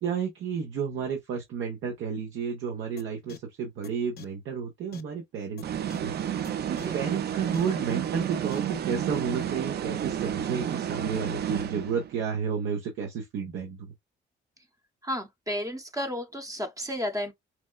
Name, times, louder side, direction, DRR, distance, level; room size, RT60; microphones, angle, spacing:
voice 1, 0.0-6.1 6.7-13.8, right 6 dB, 80° right, 0.9 m, -32 dB
sound 1, 3.0-3.1 3.3-3.4 3.8-3.9 4.2-4.3 4.9-5.0 5.6-5.7 5.9-6.0 6.4-6.5 6.8-6.9 7.5-7.6 8.5-8.6, left 9 dB, 55° left, 0.5 m, -44 dB
sound 2, 5.6-12.2, right 9 dB, 55° right, 0.5 m, -31 dB
voice 2, 15.0-17.3, equal, 15° right, 0.7 m, -32 dB
4.4 x 2.1 x 2.3 m
cardioid pair, 90°, 20 cm